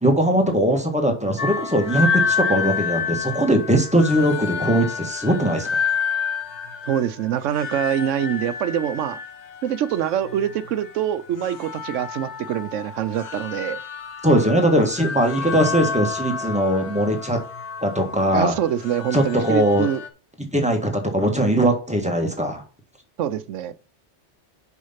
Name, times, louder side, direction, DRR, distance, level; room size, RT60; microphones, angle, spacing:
voice 1, 0.0-5.7 14.2-17.4 17.8-18.5 19.1-19.9 20.5-22.6, right 1 dB, 5° right, 1.5 m, -20 dB
sound 1, 1.4-20.1, left 6 dB, 70° left, 1.2 m, -29 dB
voice 2, 6.9-9.2 9.6-13.8 18.3-20.0 23.2-23.7, right 10 dB, 90° right, 1.0 m, -25 dB
6.3 x 5.5 x 5.7 m
omnidirectional pair, 1.2 m